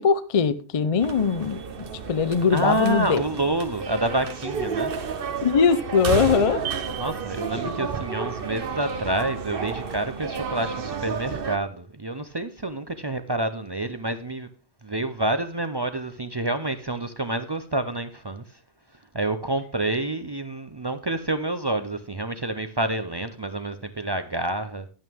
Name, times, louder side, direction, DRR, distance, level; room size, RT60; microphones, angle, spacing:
voice 1, 0.0-3.2 5.4-6.6 7.6-7.9, left 6 dB, 40° left, 0.5 m, -22 dB
sound 1, 1.0-11.6, right 6 dB, 55° right, 1.0 m, -31 dB
voice 2, 2.5-4.9 7.0-14.5 14.8-18.4 19.1-24.9, right 2 dB, 35° right, 0.4 m, -28 dB
11.0 x 8.9 x 3.5 m
omnidirectional pair, 1.2 m